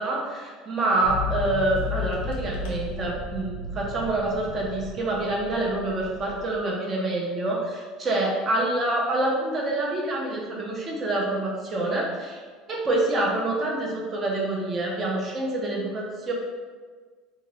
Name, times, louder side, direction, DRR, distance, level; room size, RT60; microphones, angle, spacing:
voice 1, 0.0-12.4 12.7-16.3, right 2 dB, 25° right, -2 dB, 0.6 m, -26 dB
sound 1, 1.0-6.6, left 4 dB, 80° left, 0.8 m, -34 dB
2.9 x 2.8 x 4.2 m, 1.5 s
cardioid pair, 165°, 0 cm